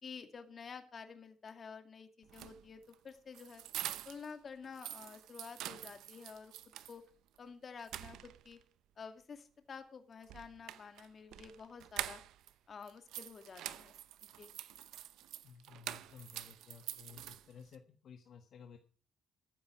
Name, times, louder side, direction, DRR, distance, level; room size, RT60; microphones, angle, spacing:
voice 1, 0.0-3.6 4.1-6.5 6.9-7.0 7.4-8.6 9.0-12.2 12.7-13.9 14.2-14.5, left 5 dB, 45° left, 7 dB, 2.3 m, -50 dB
sound 1, 2.2-4.3 4.6-7.0 7.4-7.5 7.8-8.6 10.2-12.5 12.8-17.7, right 13 dB, 85° right, 0.7 m, -46 dB
voice 2, 15.4-18.8, left 7 dB, 65° left, 5 dB, 1.4 m, -55 dB
14.0 x 9.1 x 6.0 m, 0.41 s
cardioid pair, 90°, 0 cm